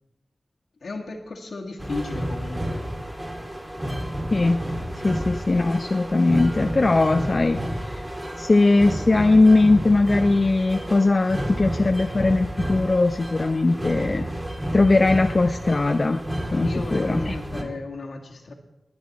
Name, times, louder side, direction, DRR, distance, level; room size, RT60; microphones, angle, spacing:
voice 1, 0.8-3.0 16.6-18.5, left 3 dB, 80° left, 1 dB, 1.8 m, -35 dB
sound 1, 1.8-17.6, equal, 20° right, 2.2 m, -31 dB
voice 2, 4.3-4.6 5.0-8.0 8.4-14.3 14.7-16.2 16.5-17.4, left 2 dB, 50° left, 6 dB, 0.6 m, -20 dB
21.0 x 8.0 x 4.1 m, 1.0 s
cardioid pair, 50°, 0 cm